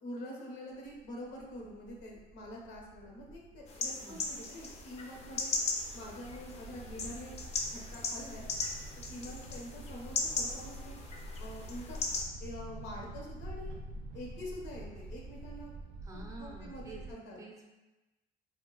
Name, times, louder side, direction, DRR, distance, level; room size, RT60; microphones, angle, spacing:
voice 1, 0.0-5.5 5.9-7.4 7.7-8.5 9.1-11.0 11.4-12.0 12.4-13.7 14.1-15.7 16.1-17.4, equal, 80° left, -2 dB, 0.7 m, -46 dB
sound 1, 0.7-17.1, right 1 dB, 75° right, 0.4 m, -47 dB
sound 2, 3.7-12.2, left 3 dB, 40° left, 0.4 m, -38 dB
voice 2, 16.0-17.0 17.4-17.7, right 2 dB, 20° right, -1 dB, 0.5 m, -49 dB
2.3 x 2.1 x 3.8 m, 1.1 s
cardioid pair, 110°, 17 cm